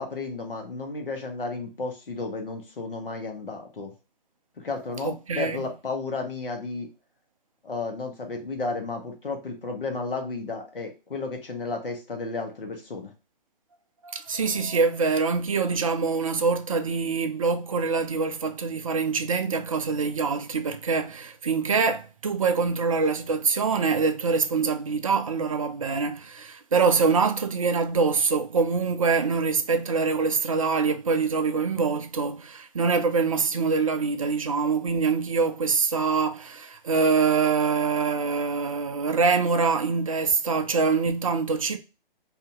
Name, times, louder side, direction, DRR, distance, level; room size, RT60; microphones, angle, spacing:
voice 1, 0.0-3.9 4.6-6.9 7.6-13.1, left 3 dB, 65° left, 1.2 m, -33 dB
voice 2, 5.0-5.7 14.0-41.8, right 4 dB, 35° right, 0.4 m, -24 dB
2.8 x 2.7 x 3.5 m
figure-of-eight pair, 140°, 29 cm